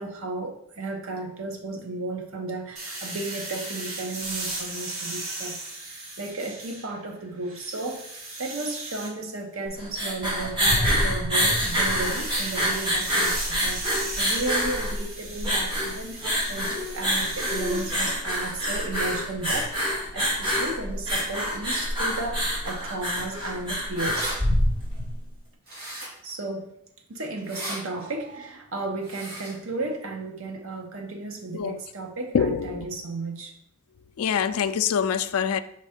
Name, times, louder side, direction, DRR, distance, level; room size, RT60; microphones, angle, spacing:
voice 1, 0.0-5.6 5.9-24.4 26.2-26.7 27.1-33.5, right 2 dB, 65° right, 0.9 m, -34 dB
sound 1, 2.8-7.0 7.4-9.1 11.6-18.0, right 2 dB, 85° right, 2.5 m, -36 dB
sound 2, 9.7-25.1, equal, 25° right, 2.3 m, -26 dB
sound 3, 24.1-24.4 25.7-26.3 27.4-27.8 29.0-29.5, right 1 dB, 45° right, 2.5 m, -35 dB
voice 2, 32.3-32.9 34.2-35.6, left 7 dB, 80° left, 0.4 m, -25 dB
5.3 x 4.1 x 5.0 m
head